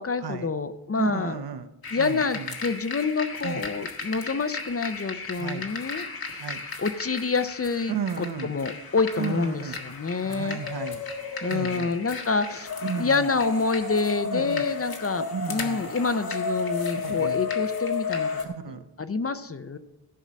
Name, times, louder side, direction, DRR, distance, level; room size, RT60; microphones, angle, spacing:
voice 1, 0.0-1.4 1.9-6.1 6.8-10.6 11.4-12.7 13.0-18.4 19.0-19.8, left 4 dB, 35° left, 12 dB, 0.6 m, -27 dB
voice 2, 1.0-1.7 2.0-2.5 3.4-3.7 5.4-5.7 6.4-6.6 7.9-8.5 9.2-9.8 10.2-11.0 11.5-11.9 12.8-13.3 14.3-14.7 15.3-15.8 16.9-17.4 18.4-18.8, right 7 dB, 65° right, 10 dB, 0.9 m, -33 dB
sound 1, 1.8-18.4, left 5 dB, 55° left, 1.7 m, -33 dB
15.0 x 5.4 x 7.5 m, 1.0 s
wide cardioid pair, 135°, 42 cm